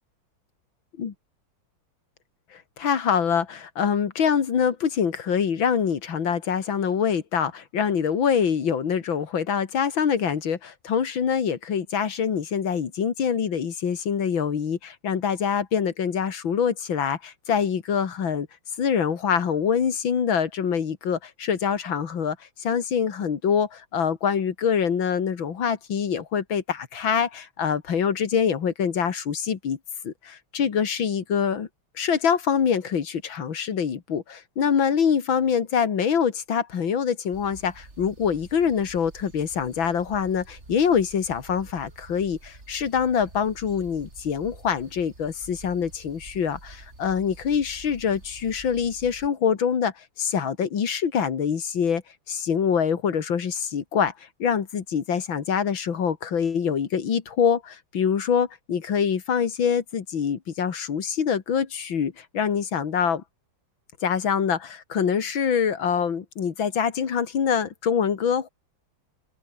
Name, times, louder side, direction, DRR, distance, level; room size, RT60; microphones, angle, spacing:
voice 1, 2.5-18.5 18.8-29.8 30.0-31.7 32.0-52.0 52.3-54.1 54.4-63.2 64.0-68.5, left 7 dB, 80° left, 2.7 m, -25 dB
sound 1, 37.3-49.3, right 2 dB, 35° right, 4.4 m, -48 dB
omnidirectional pair, 2.1 m